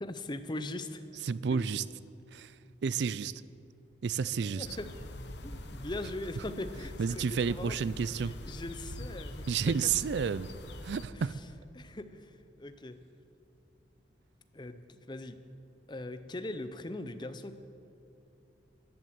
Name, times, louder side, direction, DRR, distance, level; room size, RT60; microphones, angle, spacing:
voice 1, 0.0-1.1 1.5-1.6 4.4-4.9 5.4-9.5 9.8-9.9 11.1-11.2 11.7-13.0 14.5-15.4 15.9-17.5, left 2 dB, 25° left, 10 dB, 0.7 m, -40 dB
voice 2, 1.2-1.8 2.3-2.5 2.8-3.4 4.0-4.7 7.0-8.3 9.5-10.5 10.8-11.3, right 6 dB, 70° right, 18 dB, 0.4 m, -31 dB
sound 1, 4.6-11.0, left 1 dB, 70° left, 1.0 m, -44 dB
14.0 x 11.0 x 8.0 m, 2.8 s
head